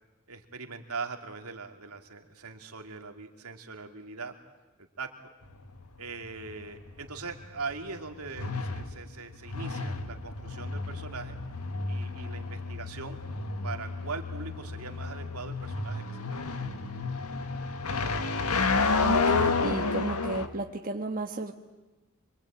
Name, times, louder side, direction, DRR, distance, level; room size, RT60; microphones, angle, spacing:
voice 1, 0.3-4.4 5.0-5.1 6.0-11.4 11.9-13.2 13.6-16.2 16.6-16.8, right 4 dB, 80° right, 4 dB, 2.6 m, -41 dB
sound 1, 5.4-20.5, left 3 dB, 90° left, 1.7 m, -31 dB
voice 2, 19.0-21.5, right 2 dB, 40° right, 3 dB, 1.4 m, -33 dB
26.0 x 24.0 x 8.9 m, 1.1 s
head